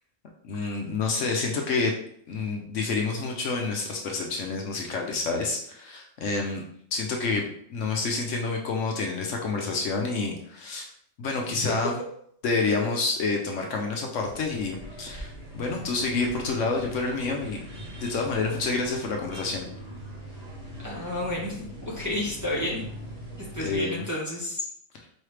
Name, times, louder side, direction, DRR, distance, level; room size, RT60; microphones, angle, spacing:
voice 1, 0.4-1.9 2.3-6.6 6.9-10.9 11.2-12.0 12.4-17.6 18.0-19.7 23.6-24.0, left 3 dB, 70° left, 1 dB, 1.0 m, -28 dB
sound 1, 14.2-23.8, equal, 30° right, 1.4 m, -41 dB
voice 2, 20.8-21.6 21.9-22.8 23.5-24.7, left 1 dB, 15° right, -7 dB, 1.1 m, -31 dB
4.6 x 3.1 x 3.2 m, 0.66 s
omnidirectional pair, 1.4 m